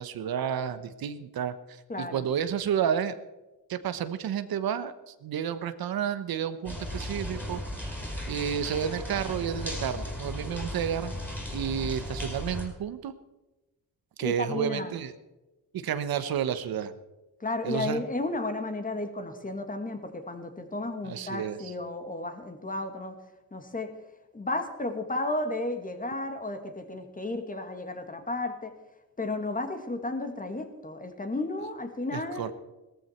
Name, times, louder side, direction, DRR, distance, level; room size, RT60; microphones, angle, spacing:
voice 1, 0.0-3.2 3.7-11.1 11.5-13.1 14.2-15.1 15.7-16.9 17.6-18.0 21.0-21.7 32.1-32.5, right 8 dB, 75° right, 12 dB, 1.1 m, -31 dB
voice 2, 1.9-2.2 14.2-14.9 17.4-23.2 23.5-23.9 24.3-28.7 29.2-32.5, left 2 dB, 20° left, 7 dB, 2.1 m, -33 dB
sound 1, 6.6-12.7, equal, 5° left, 4.9 m, -36 dB
17.5 x 14.0 x 4.5 m, 1.1 s
cardioid pair, 90°, 36 cm